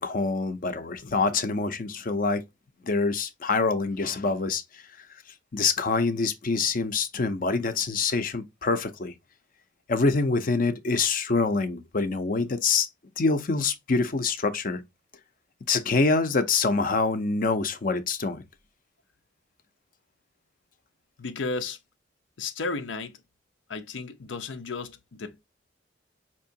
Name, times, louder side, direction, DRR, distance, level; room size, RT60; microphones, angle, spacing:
voice 1, 0.0-2.4 2.8-4.8 5.5-9.1 9.9-12.9 13.2-14.8 15.7-18.4, left 4 dB, 50° left, 0.6 m, -25 dB
voice 2, 21.2-21.8 22.4-23.2 23.7-25.4, left 3 dB, 90° left, 0.6 m, -33 dB
4.5 x 2.9 x 2.7 m
head